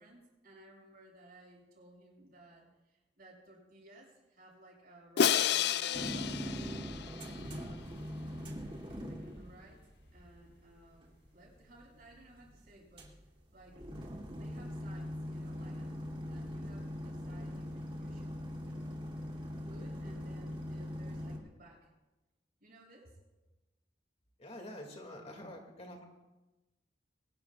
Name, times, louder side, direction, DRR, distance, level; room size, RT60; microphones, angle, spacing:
voice 1, 0.0-6.2 7.2-8.1 9.0-13.1 13.5-13.9 14.3-18.4 18.6-18.9 19.6-21.9 22.6-23.2, right 1 dB, 55° right, -2 dB, 6.9 m, -58 dB
Crash cymbal, 5.2-7.4, left 8 dB, 65° left, 0.4 m, -30 dB
sound 1, 5.9-21.4, equal, 30° right, 3.0 m, -42 dB
voice 2, 24.4-26.0, left 1 dB, 35° left, 2 dB, 2.4 m, -47 dB
23.0 x 20.0 x 2.5 m, 1.0 s
head